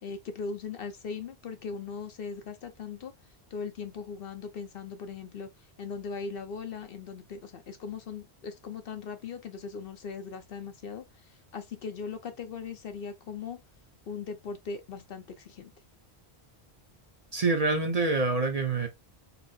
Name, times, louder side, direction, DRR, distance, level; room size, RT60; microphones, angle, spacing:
voice 1, 0.0-3.1 3.5-5.5 5.8-11.0 11.5-13.6 14.1-15.7, left 5 dB, 60° left, 0.9 m, -39 dB
voice 2, 17.3-18.9, right 3 dB, 40° right, 0.8 m, -26 dB
4.2 x 2.0 x 3.9 m
omnidirectional pair, 1.1 m